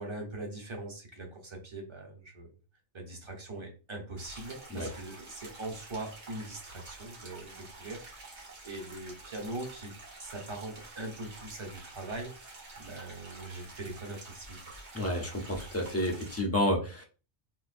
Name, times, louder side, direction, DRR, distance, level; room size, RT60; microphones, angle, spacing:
voice 1, 0.0-2.5 2.9-8.4 8.6-9.9 10.2-14.7, right 2 dB, 30° right, 1 dB, 0.7 m, -41 dB
sound 1, 4.2-16.4, right 2 dB, 75° right, 1.4 m, -49 dB
voice 2, 14.9-17.0, left 1 dB, 20° left, 1 dB, 0.4 m, -30 dB
3.8 x 2.5 x 2.5 m, 0.35 s
omnidirectional pair, 1.2 m